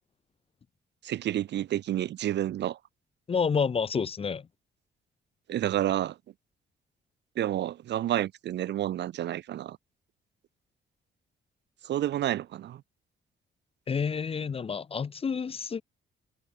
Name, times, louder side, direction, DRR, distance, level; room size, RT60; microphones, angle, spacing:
voice 1, 1.0-2.8 5.5-6.1 7.4-9.8 11.8-12.8, right 12 dB, 60° right, 0.6 m, -29 dB
voice 2, 3.3-4.5 13.9-15.8, left 6 dB, 30° left, 0.5 m, -29 dB
cardioid pair, 90°, 20 cm